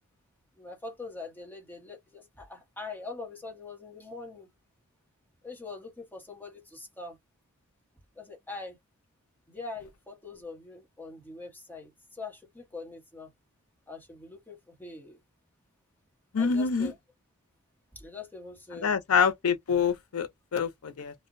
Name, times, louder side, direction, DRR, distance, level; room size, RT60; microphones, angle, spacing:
voice 1, 0.6-4.5 5.4-7.2 8.1-8.8 9.5-13.3 13.9-15.2 16.4-16.9 17.9-18.9, left 3 dB, 10° left, 1.0 m, -43 dB
voice 2, 16.3-16.9 18.7-21.1, left 6 dB, 85° left, 0.5 m, -26 dB
2.5 x 2.1 x 2.5 m
head